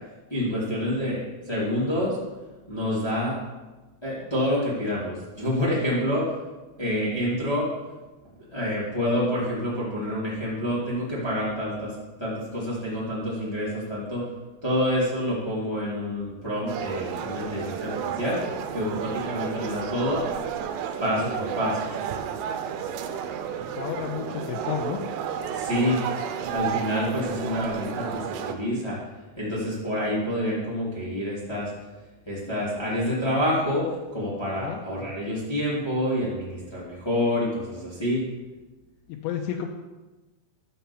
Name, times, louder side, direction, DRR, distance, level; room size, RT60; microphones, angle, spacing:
voice 1, 0.3-2.2 2.7-3.4 4.0-6.3 6.8-7.7 8.5-14.2 14.6-18.4 18.7-20.2 21.0-21.8 25.5-26.0 26.5-29.0 29.4-31.7 32.2-38.2, left 1 dB, 20° left, -8 dB, 0.7 m, -27 dB
sound 1, 16.7-28.5, right 8 dB, 80° right, 3.2 m, -32 dB
voice 2, 23.8-25.0 34.6-34.8 39.1-39.7, left 9 dB, 85° left, 2 dB, 2.7 m, -31 dB
11.5 x 5.7 x 7.0 m, 1.2 s
omnidirectional pair, 5.6 m